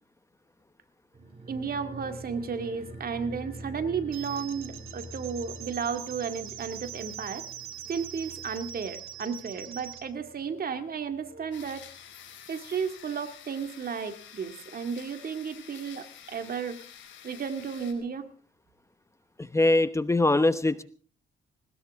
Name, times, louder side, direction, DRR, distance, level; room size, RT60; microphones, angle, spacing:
sound 1, 1.1-12.0 12.3-12.4, right 1 dB, 30° right, 7.4 m, -46 dB
voice 1, 1.5-7.5 7.9-11.8 12.5-16.8 17.2-18.3, right 6 dB, 50° right, 7 dB, 2.2 m, -33 dB
sound 2, 4.1-10.0, right 10 dB, 90° right, 1.8 m, -42 dB
sound 3, 11.5-17.9, left 9 dB, 70° left, 4.6 m, -49 dB
voice 2, 19.5-20.8, left 2 dB, 15° left, 12 dB, 1.0 m, -22 dB
20.5 x 19.5 x 3.6 m, 0.42 s
cardioid pair, 90°, 20 cm